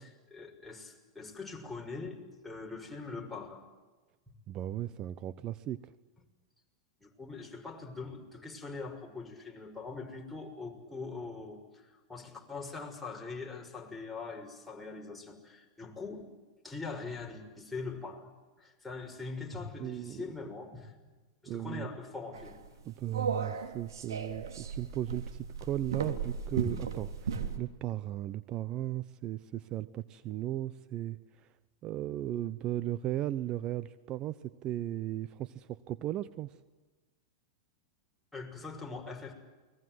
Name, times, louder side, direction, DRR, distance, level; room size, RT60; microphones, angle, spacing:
voice 1, 0.0-3.7 7.0-16.3 16.6-18.3 18.6-21.0 21.4-22.6 38.3-39.3, left 4 dB, 5° left, 0 dB, 6.2 m, -42 dB
voice 2, 4.5-5.9 19.8-20.2 21.5-21.9 22.9-31.2 31.8-36.5, right 13 dB, 40° right, 14 dB, 0.9 m, -36 dB
sound 1, 22.3-27.6, right 6 dB, 80° right, 3.2 m, -36 dB
29.5 x 21.5 x 7.9 m, 1.2 s
hypercardioid pair, 110°, 2 cm